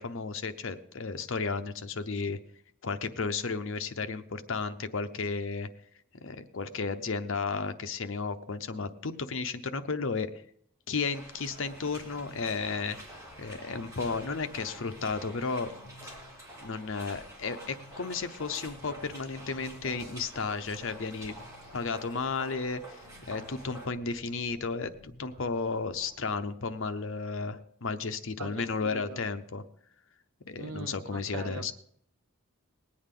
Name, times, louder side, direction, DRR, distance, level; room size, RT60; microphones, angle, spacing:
voice 1, 0.0-2.4 2.8-5.7 6.2-10.4 10.9-13.0 13.4-15.7 16.0-16.1 16.6-21.4 21.7-23.0 23.3-29.6 30.5-31.7, left 4 dB, 65° left, 10 dB, 0.7 m, -33 dB
sound 1, 11.0-23.9, right 1 dB, 15° right, 2.4 m, -48 dB
sound 2, 11.5-26.2, left 1 dB, 30° left, 5.4 m, -56 dB
voice 2, 28.4-29.2 30.6-31.7, right 3 dB, 85° right, 6 dB, 1.3 m, -41 dB
20.0 x 8.6 x 3.8 m, 0.65 s
head